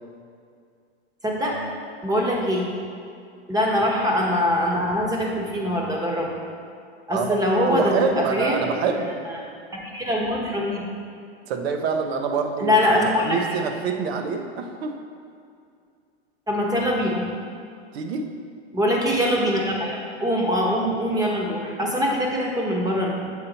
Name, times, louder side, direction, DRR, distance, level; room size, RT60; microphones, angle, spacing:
voice 1, 1.2-1.6 2.0-2.7 3.5-6.3 7.1-8.7 9.7-10.9 12.6-13.4 16.5-17.2 18.7-23.1, equal, 10° right, -2 dB, 1.1 m, -23 dB
voice 2, 7.7-9.1 11.5-14.9 17.9-18.3, right 5 dB, 65° right, 5 dB, 0.8 m, -26 dB
7.4 x 4.3 x 4.0 m, 2.4 s
hypercardioid pair, 120°, 33 cm